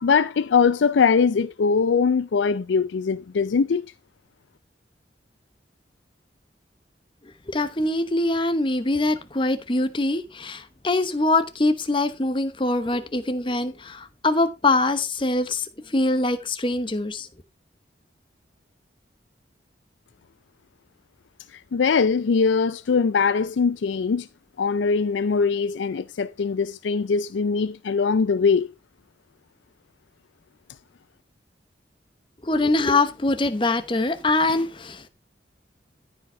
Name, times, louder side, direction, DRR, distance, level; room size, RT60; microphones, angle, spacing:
voice 1, 0.0-3.9 21.5-24.3 24.6-28.7, left 5 dB, 80° left, 0.4 m, -21 dB
voice 2, 7.5-17.3 32.4-35.1, left 2 dB, 25° left, 0.9 m, -23 dB
13.5 x 5.0 x 4.5 m
head